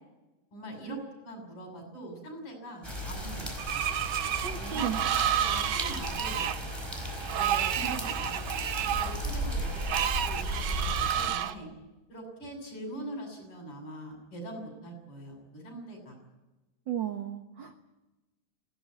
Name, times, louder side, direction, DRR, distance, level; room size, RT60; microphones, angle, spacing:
voice 1, 0.5-3.8 4.6-6.5 7.3-8.4 8.8-9.8 10.2-11.7 12.1-16.2, right 1 dB, 45° left, 3 dB, 7.6 m, -42 dB
sound 1, 2.8-11.3, equal, 10° right, 4.5 m, -35 dB
Screech, 3.6-11.5, right 10 dB, 85° right, 1.1 m, -31 dB
voice 2, 4.4-5.0 16.9-17.7, right 10 dB, 55° right, 6 dB, 1.4 m, -34 dB
20.5 x 17.5 x 9.4 m, 1.1 s
omnidirectional pair, 3.4 m